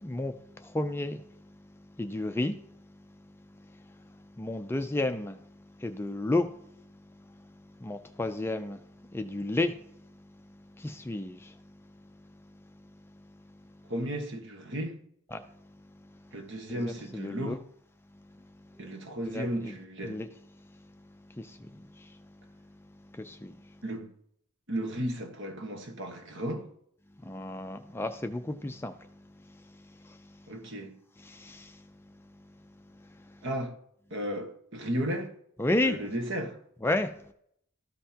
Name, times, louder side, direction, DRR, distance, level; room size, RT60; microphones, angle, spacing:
voice 1, 0.0-1.2 2.0-2.6 4.4-5.4 5.8-6.5 7.8-8.8 9.1-9.8 10.7-11.5 15.3-15.4 16.7-17.6 18.8-18.9 19.2-19.7 20.0-20.3 21.4-22.2 23.1-23.6 27.2-29.1 30.0-30.2 31.2-31.8 33.3-33.4 35.6-36.0 36.8-37.1, left 2 dB, 10° left, 0.4 m, -32 dB
voice 2, 13.9-15.0 16.3-17.6 18.8-20.2 23.8-24.1 24.7-26.7 30.5-31.0 33.4-33.8 34.1-35.3 35.8-36.6, right 1 dB, 60° right, 1.3 m, -34 dB
13.5 x 5.5 x 2.8 m
head